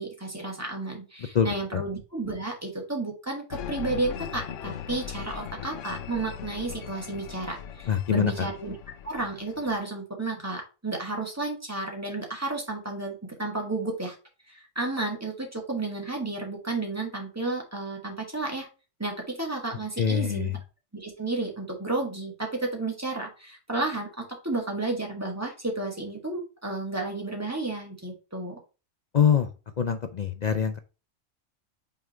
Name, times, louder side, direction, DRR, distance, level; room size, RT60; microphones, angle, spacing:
voice 1, 0.0-8.7 9.0-14.2 14.5-18.7 19.0-20.5 20.9-28.6, right 2 dB, 10° right, 0 dB, 1.7 m, -32 dB
sound 1, 3.5-9.8, left 9 dB, 80° left, 1.0 m, -39 dB
voice 2, 7.9-8.5 20.0-20.6 29.1-29.5 29.8-30.8, left 7 dB, 55° left, 8 dB, 0.5 m, -24 dB
5.7 x 3.7 x 4.4 m, 0.31 s
omnidirectional pair, 1.3 m